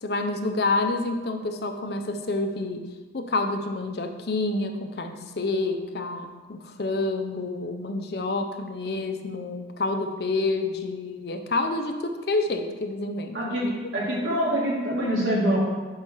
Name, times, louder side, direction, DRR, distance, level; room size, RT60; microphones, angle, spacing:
voice 1, 0.0-2.9 3.1-13.7, left 2 dB, 55° left, 6 dB, 0.6 m, -28 dB
voice 2, 13.3-15.6, right 1 dB, 80° right, -4 dB, 2.3 m, -25 dB
7.1 x 5.5 x 4.6 m, 1.3 s
head